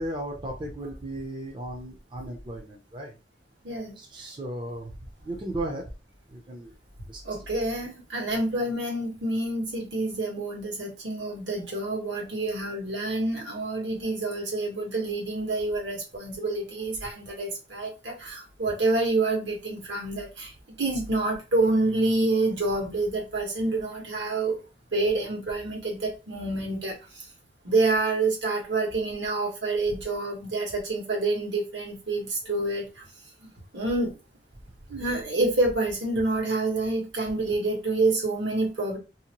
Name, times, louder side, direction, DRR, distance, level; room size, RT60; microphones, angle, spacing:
voice 1, 0.0-3.2 4.0-4.9 5.2-5.9 6.3-6.7 7.1-7.4, right 1 dB, 25° right, 1 dB, 0.5 m, -35 dB
voice 2, 7.2-20.5 20.8-24.6 24.9-26.9 27.6-32.8 33.7-34.1 34.9-39.0, right 2 dB, 85° right, -1 dB, 1.2 m, -27 dB
2.7 x 2.1 x 2.9 m, 0.31 s
head